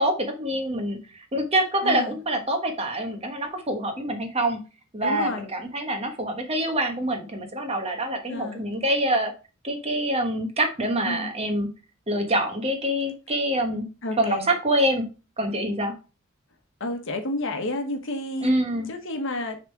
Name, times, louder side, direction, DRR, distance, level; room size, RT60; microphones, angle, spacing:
voice 1, 0.0-4.6 4.9-9.3 9.6-11.7 12.1-13.9 14.2-15.1 15.4-15.9 18.4-18.9, right 1 dB, 30° right, 1.2 m, -25 dB
voice 2, 1.8-2.2 5.0-5.5 8.2-8.6 11.0-11.3 14.0-14.5 16.8-18.5 18.9-19.6, left 1 dB, 65° left, 1.3 m, -30 dB
6.5 x 3.7 x 4.6 m
head